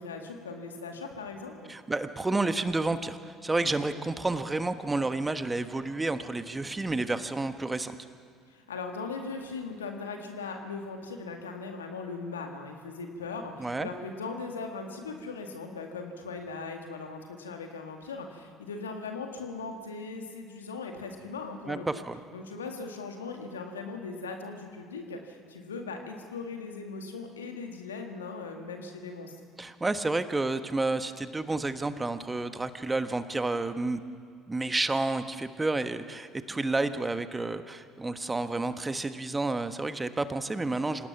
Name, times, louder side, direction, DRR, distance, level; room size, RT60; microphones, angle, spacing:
voice 1, 0.0-1.7 8.5-22.0 22.3-29.4, left 4 dB, 85° left, 4 dB, 2.0 m, -39 dB
voice 2, 1.7-8.0 13.6-13.9 21.7-22.2 29.6-34.0 34.5-41.1, right 2 dB, 15° right, 10 dB, 1.2 m, -30 dB
26.5 x 17.5 x 5.9 m, 2.1 s
figure-of-eight pair, 60°, 0 cm